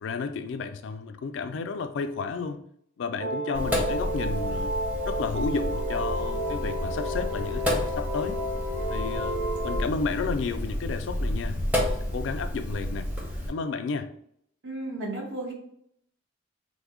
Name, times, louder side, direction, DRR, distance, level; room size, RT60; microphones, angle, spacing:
voice 1, 0.0-2.6 3.0-4.7 5.1-8.4 8.9-9.4 9.6-13.1 13.5-14.1, left 4 dB, 65° left, 9 dB, 0.3 m, -32 dB
sound 1, 3.2-9.9, equal, 90° right, 0.5 m, -32 dB
Sink (filling or washing), 3.5-13.5, left 1 dB, 10° right, 0.6 m, -31 dB
voice 2, 14.6-15.5, right 2 dB, 65° right, -2 dB, 1.1 m, -33 dB
3.3 x 2.1 x 3.6 m, 0.71 s
head